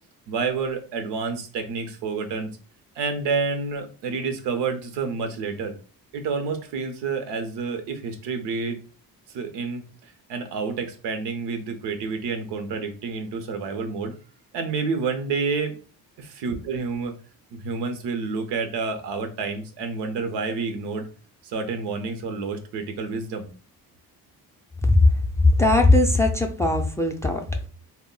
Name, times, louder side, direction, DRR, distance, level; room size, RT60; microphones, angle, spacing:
voice 1, 0.3-2.5 3.0-5.7 6.1-8.8 9.3-14.1 14.5-15.8 16.2-17.2 17.5-21.1 21.4-23.5, right 4 dB, 90° right, 7 dB, 0.6 m, -29 dB
voice 2, 25.4-27.7, left 2 dB, 10° left, 4 dB, 0.3 m, -19 dB
2.1 x 2.1 x 3.7 m, 0.37 s
cardioid pair, 85°, 40 cm